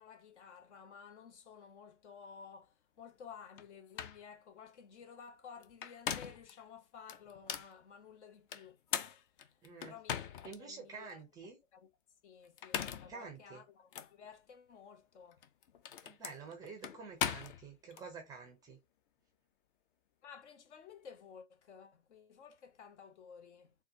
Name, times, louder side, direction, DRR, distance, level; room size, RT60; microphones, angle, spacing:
voice 1, 0.0-8.8 9.5-9.6 9.8-11.2 11.7-11.9 12.2-15.4 20.2-23.7, left 6 dB, 60° left, 0.9 m, -54 dB
sound 1, 3.6-3.7 4.0-4.2 5.6-6.5 7.1-7.7 8.5-10.6 11.1-11.2 12.5-13.2 13.9-14.1 15.3-18.0, left 8 dB, 45° left, 0.5 m, -40 dB
voice 2, 9.6-9.9 10.4-11.6 13.1-13.6 16.0-18.8, right 5 dB, 10° right, 0.4 m, -49 dB
3.9 x 2.2 x 2.7 m
figure-of-eight pair, 115°, 39 cm